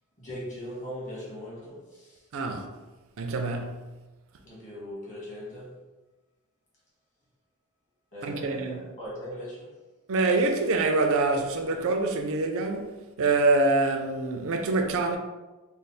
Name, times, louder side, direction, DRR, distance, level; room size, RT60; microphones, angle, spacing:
voice 1, 0.2-2.2 4.4-5.7 8.1-9.7 14.9-15.0, equal, 35° left, 1.4 m, -39 dB
voice 2, 2.3-2.7 3.2-3.8 8.2-8.8 10.1-15.2, right 3 dB, 65° right, 0.5 m, -25 dB
3.3 x 2.0 x 4.1 m
head